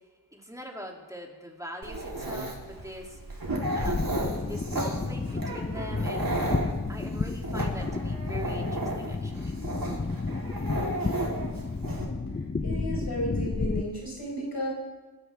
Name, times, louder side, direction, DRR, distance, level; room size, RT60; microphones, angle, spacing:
voice 1, 0.3-3.2 3.7-6.3 6.9-9.6, equal, 10° right, 0 dB, 2.8 m, -42 dB
Dog, 1.8-12.1, right 2 dB, 55° right, 3.5 m, -34 dB
sound 1, 3.5-13.8, left 3 dB, 25° left, 0.7 m, -31 dB
voice 2, 12.6-14.7, equal, 70° left, -3 dB, 4.6 m, -33 dB
25.5 x 12.5 x 3.5 m, 1.3 s
wide cardioid pair, 50°, 41 cm